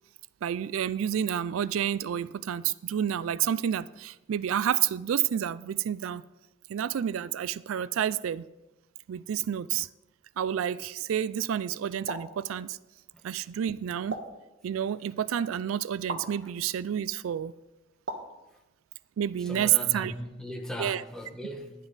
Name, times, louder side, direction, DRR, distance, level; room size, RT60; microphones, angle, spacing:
voice 1, 0.4-6.2 6.7-8.5 9.1-9.9 10.4-12.8 13.2-14.2 14.6-17.5 19.2-20.1 20.8-21.0, right 9 dB, 90° right, 0.3 m, -29 dB
sound 1, 12.1-12.4 14.1-14.4 16.1-16.3 18.1-18.4, right 2 dB, 60° right, 1.3 m, -36 dB
voice 2, 19.4-21.7, equal, 5° left, 1.1 m, -38 dB
11.0 x 11.0 x 4.0 m
head